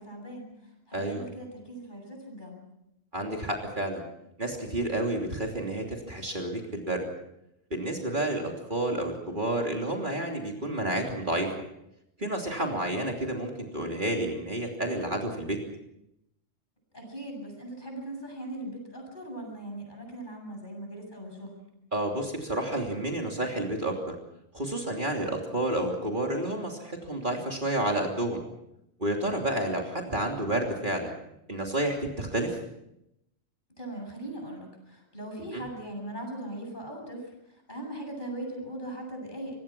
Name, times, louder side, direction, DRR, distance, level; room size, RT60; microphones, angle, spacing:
voice 1, 0.0-2.7 16.9-21.6 33.8-39.6, right 1 dB, 35° left, 2 dB, 7.9 m, -40 dB
voice 2, 0.9-1.3 3.1-4.0 4.4-7.1 7.7-11.5 12.2-15.6 21.9-24.1 24.5-28.4 29.0-31.1 31.5-32.6 35.5-35.6, right 1 dB, 40° right, 1 dB, 3.2 m, -30 dB
25.0 x 22.0 x 6.1 m, 0.82 s
omnidirectional pair, 1.3 m